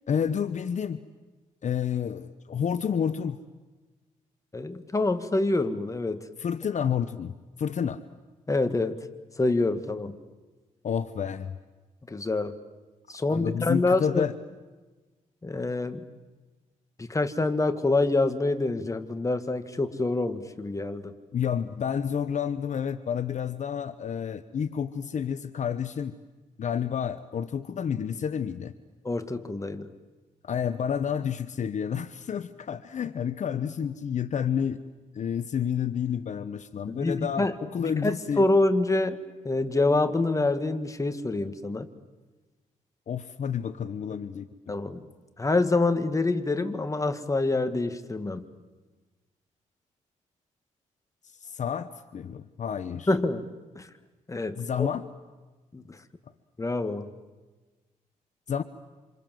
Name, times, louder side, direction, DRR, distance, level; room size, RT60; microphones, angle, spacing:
voice 1, 0.1-1.0 1.6-3.4 6.4-8.0 10.8-11.6 13.3-14.3 21.3-26.1 26.6-28.7 30.4-34.8 35.1-38.5 43.1-44.7 51.4-53.1 54.6-55.0 58.5-58.6, left 8 dB, 60° left, 12 dB, 1.0 m, -30 dB
voice 2, 4.5-6.2 8.5-9.0 9.4-10.2 12.1-12.6 13.1-14.2 15.4-16.0 17.0-21.1 29.0-29.9 36.9-37.5 37.9-39.2 39.4-41.9 44.7-45.0 45.4-48.4 53.1-53.4 53.8-53.9 54.3-54.9 55.7-55.8 56.6-57.1, left 2 dB, 25° left, 9 dB, 2.0 m, -26 dB
27.5 x 27.0 x 7.7 m, 1.2 s
cardioid pair, 80°, 14 cm